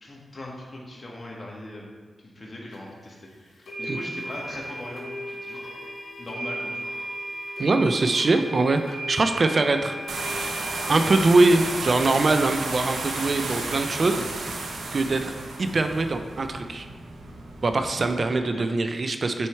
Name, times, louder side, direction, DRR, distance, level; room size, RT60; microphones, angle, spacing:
voice 1, 0.0-1.9 2.2-3.2 3.8-5.6 6.2-6.7 18.1-18.7, left 1 dB, 40° left, -2 dB, 1.7 m, -39 dB
sound 1, 2.7-2.8 3.7-15.2, right 1 dB, 85° left, 2.0 m, -37 dB
voice 2, 7.6-9.9 10.9-14.3 14.9-16.9 17.6-19.5, right 3 dB, 55° right, 7 dB, 0.4 m, -22 dB
sound 2, 10.1-18.2, right 3 dB, 90° right, 0.8 m, -33 dB
6.2 x 4.6 x 4.5 m, 1.4 s
cardioid pair, 60°, 0 cm